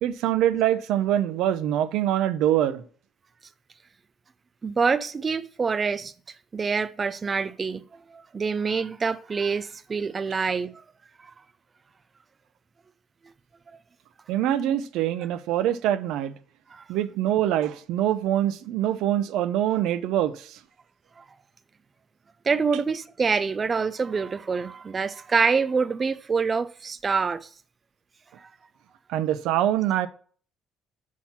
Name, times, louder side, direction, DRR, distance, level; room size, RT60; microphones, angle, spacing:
voice 1, 0.0-2.8 14.3-16.3 16.9-20.6 29.1-30.1, right 11 dB, 80° right, 0.7 m, -24 dB
voice 2, 4.6-6.1 6.5-7.8 8.1-10.8 11.2-11.3 13.7-13.8 16.7-16.8 21.2-21.3 22.4-27.5 28.4-28.5, right 5 dB, 25° right, 0.4 m, -26 dB
6.3 x 5.9 x 5.8 m
cardioid pair, 140°, 0 cm